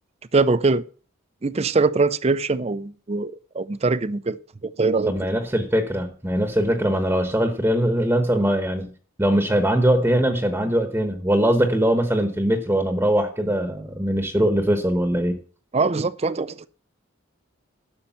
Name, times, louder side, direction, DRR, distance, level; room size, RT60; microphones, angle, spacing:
voice 1, 0.3-0.8 1.4-4.4 4.6-5.3 15.7-16.7, right 3 dB, 30° right, 0.5 m, -22 dB
voice 2, 5.1-8.9 9.2-15.4, equal, 10° right, 1.0 m, -21 dB
11.5 x 6.5 x 7.0 m
head